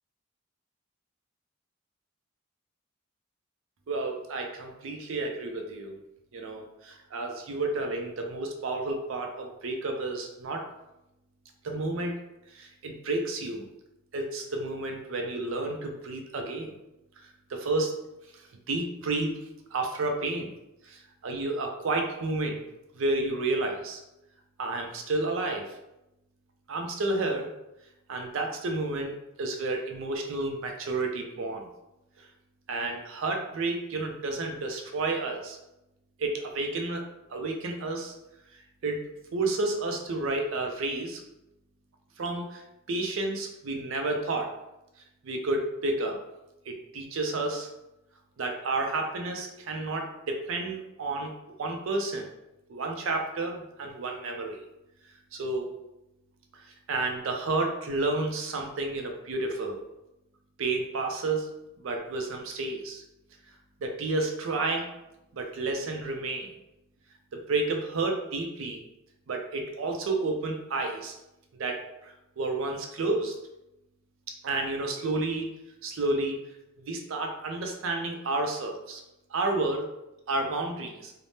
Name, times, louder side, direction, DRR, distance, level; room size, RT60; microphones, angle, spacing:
voice 1, 3.9-6.0 6.3-10.7 11.6-12.1 12.5-13.7 14.1-16.7 17.2-17.9 18.3-19.4 19.7-20.5 20.8-22.6 22.9-24.0 24.6-25.7 26.7-27.5 28.1-31.7 32.2-32.3 32.7-35.6 36.2-37.0 37.3-38.1 38.5-39.0 39.3-41.2 42.2-42.6 42.9-44.5 45.2-46.2 46.7-47.7 48.4-51.3 51.6-52.3 52.7-54.6 55.3-55.7 56.5-59.8 60.6-61.5 61.8-63.0 63.8-64.9 65.3-66.5 67.3-68.8 69.3-71.1 71.6-73.4 74.3-75.5 75.8-76.4 76.8-79.0 79.3-79.9 80.3-81.1, right 2 dB, 70° right, 3 dB, 0.4 m, -31 dB
3.3 x 2.0 x 2.7 m, 0.91 s
head